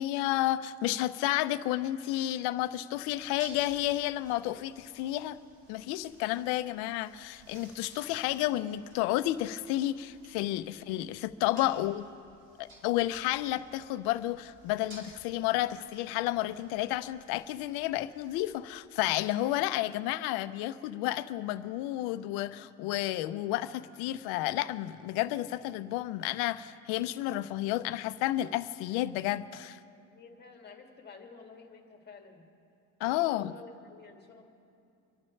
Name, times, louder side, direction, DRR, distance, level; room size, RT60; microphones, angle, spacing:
voice 1, 0.0-5.4 5.7-12.0 12.6-29.8 33.0-33.5, left 15 dB, 90° left, 0.7 m, -31 dB
sound 1, 2.9-18.8, right 1 dB, 50° right, 4.2 m, -56 dB
voice 2, 11.5-11.8 30.1-32.4 33.1-34.4, left 4 dB, 25° left, 2.1 m, -51 dB
26.0 x 12.0 x 3.2 m
cardioid pair, 115°, 37 cm